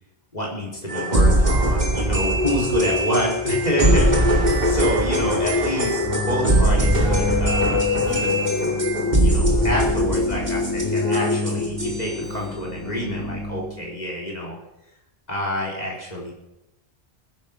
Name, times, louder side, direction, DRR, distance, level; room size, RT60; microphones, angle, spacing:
voice 1, 0.3-8.5 9.2-14.6 15.3-16.3, equal, 40° left, -3 dB, 4.4 m, -28 dB
sound 1, 0.9-12.2, right 1 dB, 45° right, 2.7 m, -22 dB
sound 2, 2.3-13.4, left 4 dB, 20° left, 0.6 m, -26 dB
Keyboard (musical), 6.0-13.9, left 1 dB, 70° left, 7.7 m, -30 dB
20.0 x 11.0 x 5.4 m, 0.91 s
omnidirectional pair, 1.0 m